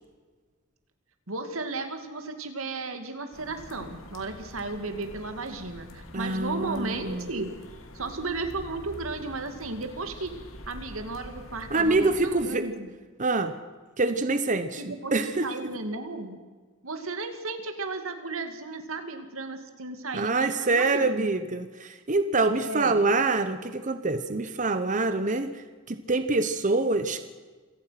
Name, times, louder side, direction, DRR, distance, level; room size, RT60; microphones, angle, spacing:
voice 1, 1.3-7.5 7.9-10.3 10.7-12.9 14.8-15.1 15.4-16.4 16.8-21.3 22.6-23.0, right 3 dB, 90° right, 7 dB, 2.5 m, -34 dB
sound 1, 3.3-12.4, left 1 dB, 75° left, 2.8 m, -45 dB
voice 2, 6.1-7.3 11.7-12.6 13.2-13.5 14.0-14.8 15.1-15.5 20.1-27.2, right 3 dB, 40° right, 10 dB, 1.0 m, -25 dB
26.5 x 18.0 x 5.9 m, 1.4 s
head